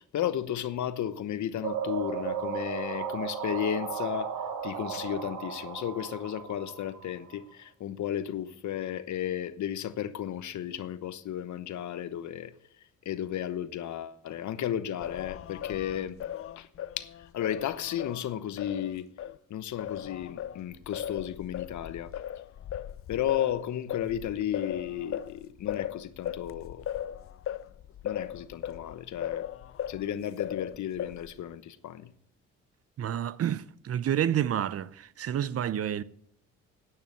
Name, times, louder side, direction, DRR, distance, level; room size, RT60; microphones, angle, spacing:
voice 1, 0.0-4.3 4.6-12.5 13.0-16.2 16.6-16.7 17.0-19.1 19.5-22.1 23.1-26.8 28.0-29.5 29.9-32.1, left 10 dB, 65° left, 1.0 m, -34 dB
sound 1, 1.6-7.4, right 7 dB, 75° right, 2.3 m, -35 dB
Singing, 15.0-19.4 19.8-30.1 30.4-31.4, left 10 dB, 45° left, 0.5 m, -38 dB
voice 2, 33.0-36.0, right 10 dB, 50° right, 0.6 m, -29 dB
10.5 x 9.0 x 6.9 m
supercardioid pair, 70°, 32 cm